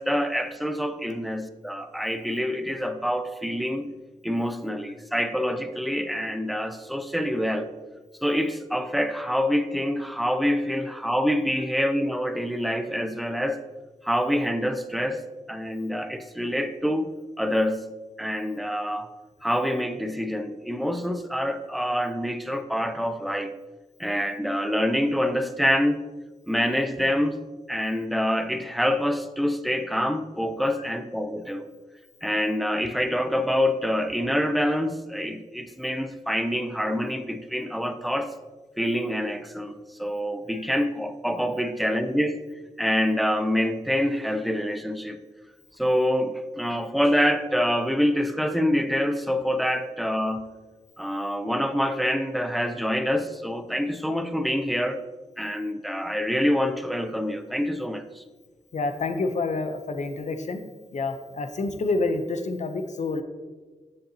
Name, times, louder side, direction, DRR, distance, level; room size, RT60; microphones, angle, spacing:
voice 1, 0.0-3.9 4.2-7.7 8.2-13.6 14.0-15.2 15.5-17.1 17.4-17.9 18.2-19.1 19.4-23.5 24.0-26.1 26.5-27.4 27.7-31.6 32.2-38.3 38.8-42.4 42.8-45.2 45.8-50.5 51.0-55.0 55.4-58.2, equal, ahead, 9 dB, 0.4 m, -26 dB
voice 2, 58.7-60.6 60.9-63.2, left 3 dB, 55° left, 7 dB, 0.6 m, -28 dB
7.6 x 6.8 x 2.8 m, 1.3 s
wide cardioid pair, 110°, 14 cm